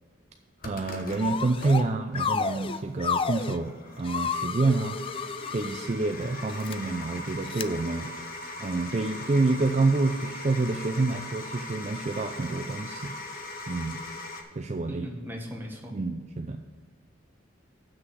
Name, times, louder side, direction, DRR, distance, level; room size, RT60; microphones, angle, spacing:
sound 1, 0.6-14.4, left 2 dB, 45° left, 1.1 m, -41 dB
voice 1, 0.6-5.0 5.5-8.1 8.6-13.2 13.7-14.0 14.6-15.1 15.9-16.6, right 3 dB, 35° right, 5 dB, 0.4 m, -27 dB
sound 2, 1.2-1.8 2.1-3.6 4.0-5.9 6.5-6.7 7.5-7.6, left 6 dB, 25° left, 0.3 m, -31 dB
voice 2, 14.9-16.0, equal, 10° right, 0 dB, 1.3 m, -38 dB
7.5 x 6.3 x 6.3 m, 1.6 s
head